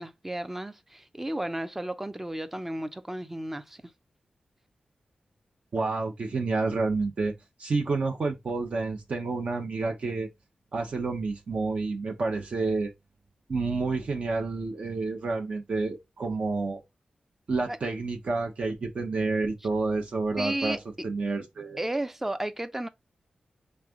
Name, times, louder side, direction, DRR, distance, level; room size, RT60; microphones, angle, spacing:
voice 1, 0.0-3.8 17.7-17.8 20.4-20.8 21.8-22.9, right 1 dB, 10° right, 0.5 m, -33 dB
voice 2, 5.7-7.3 7.6-10.3 10.7-12.9 13.5-16.8 17.5-20.8 21.0-21.8, right 3 dB, 55° right, 0.8 m, -29 dB
3.5 x 3.2 x 3.6 m
wide cardioid pair, 125°, 3 cm